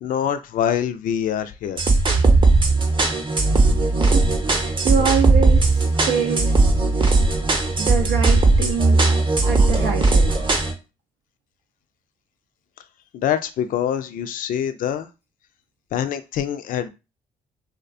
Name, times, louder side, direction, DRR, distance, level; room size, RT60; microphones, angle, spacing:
voice 1, 0.0-1.8 13.1-15.1 15.9-16.9, left 9 dB, 60° left, 0.4 m, -25 dB
sound 1, 1.8-10.7, right 3 dB, 30° right, 0.7 m, -18 dB
voice 2, 4.0-6.5 7.8-9.0 9.5-10.3, right 7 dB, 85° right, 0.4 m, -25 dB
2.3 x 2.1 x 2.5 m
hypercardioid pair, 55°, 16 cm